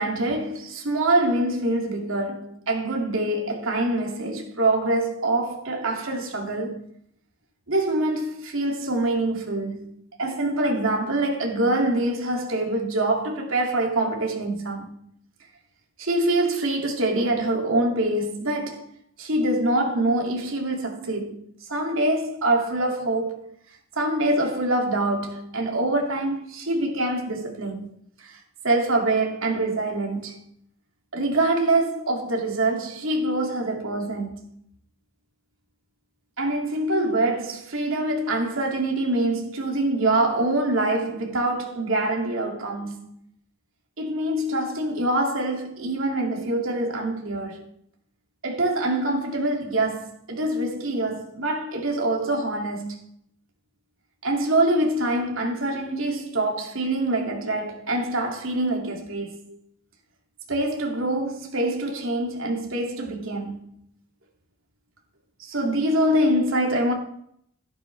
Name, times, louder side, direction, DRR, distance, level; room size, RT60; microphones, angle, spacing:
voice 1, 0.0-6.8 7.7-9.9 10.2-15.0 16.0-18.9 19.2-23.5 24.0-27.9 28.2-28.4 28.6-30.5 31.1-34.5 36.4-43.2 44.0-47.7 48.4-53.0 54.2-59.6 60.5-63.8 65.4-66.9, right 1 dB, 80° right, 2.5 m, -25 dB
12.0 x 11.5 x 3.3 m
head